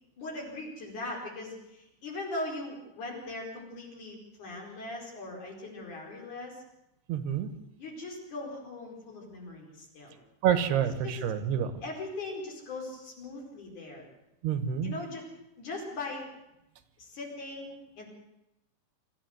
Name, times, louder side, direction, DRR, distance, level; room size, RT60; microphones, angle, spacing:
voice 1, 0.2-6.6 7.8-10.2 11.0-11.2 11.8-14.0 14.8-15.3 15.6-16.3 17.0-18.1, left 2 dB, 50° left, 0 dB, 6.0 m, -40 dB
voice 2, 7.1-7.5 10.4-11.7 14.4-15.0, right 9 dB, 80° right, 11 dB, 3.3 m, -28 dB
25.0 x 14.0 x 8.0 m, 0.89 s
omnidirectional pair, 4.7 m